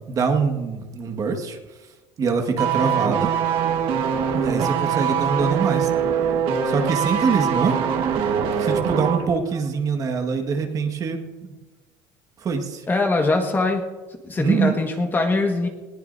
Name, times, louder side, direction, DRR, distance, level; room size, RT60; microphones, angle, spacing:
voice 1, 0.1-1.6 2.2-3.3 4.3-5.9 6.6-7.8 8.6-11.2 12.4-12.9 14.4-14.8, right 5 dB, 35° right, 4 dB, 1.8 m, -23 dB
sound 1, 2.6-9.3 9.5-9.7, right 7 dB, 60° right, 1.6 m, -23 dB
voice 2, 12.9-13.8 14.2-15.7, left 3 dB, 20° left, 3 dB, 1.7 m, -22 dB
20.0 x 18.0 x 2.7 m, 1.2 s
cardioid pair, 135°, 10 cm